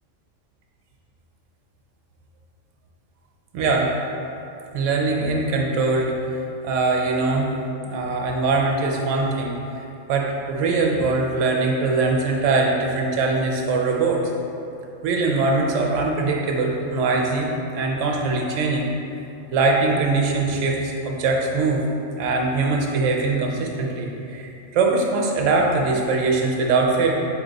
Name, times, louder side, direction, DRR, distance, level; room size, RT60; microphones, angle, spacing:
voice 1, 3.5-3.9 4.7-6.2 6.6-7.5 7.8-9.5 10.1-14.2 15.0-18.9 19.5-21.8 22.2-27.1, right 3 dB, 75° right, 0 dB, 1.0 m, -22 dB
4.1 x 3.2 x 4.0 m, 2.8 s
omnidirectional pair, 1.3 m